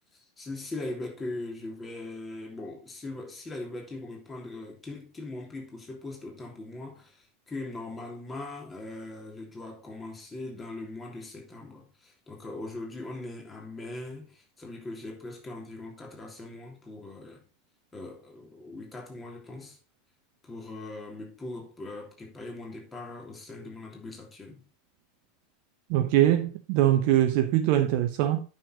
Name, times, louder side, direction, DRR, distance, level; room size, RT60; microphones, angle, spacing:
voice 1, 0.1-17.4 17.9-19.8 20.4-24.6, left 2 dB, 20° left, 3.1 m, -40 dB
voice 2, 25.9-28.4, right 12 dB, 50° right, 0.7 m, -23 dB
9.1 x 6.7 x 3.8 m
figure-of-eight pair, 80°, 0 cm